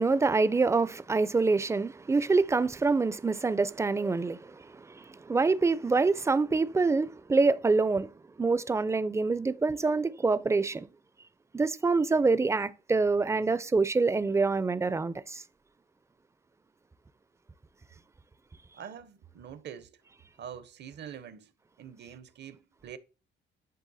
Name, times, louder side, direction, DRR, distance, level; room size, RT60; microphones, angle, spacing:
voice 1, 0.0-8.1 8.4-10.9 11.5-15.4, right 3 dB, 15° right, 0.4 m, -26 dB
voice 2, 18.7-20.0 20.4-21.5 21.8-23.0, right 8 dB, 55° right, 0.6 m, -45 dB
10.0 x 3.5 x 2.7 m
supercardioid pair, 55°, 21 cm